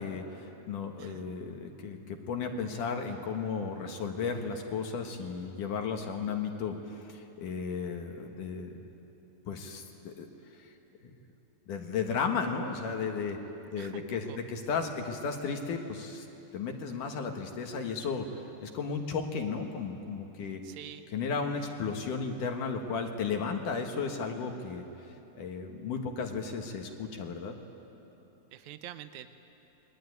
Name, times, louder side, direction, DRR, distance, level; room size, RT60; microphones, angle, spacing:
voice 1, 0.0-8.8 9.5-10.3 10.5-10.7 11.0-11.1 11.7-13.4 13.7-16.3 16.5-20.6 21.1-24.9 25.4-27.6, left 5 dB, 60° left, 4 dB, 2.7 m, -34 dB
voice 2, 13.8-14.4 20.4-21.1 28.5-29.3, right 12 dB, 85° right, 10 dB, 1.7 m, -46 dB
28.5 x 21.5 x 9.6 m, 3.0 s
omnidirectional pair, 4.7 m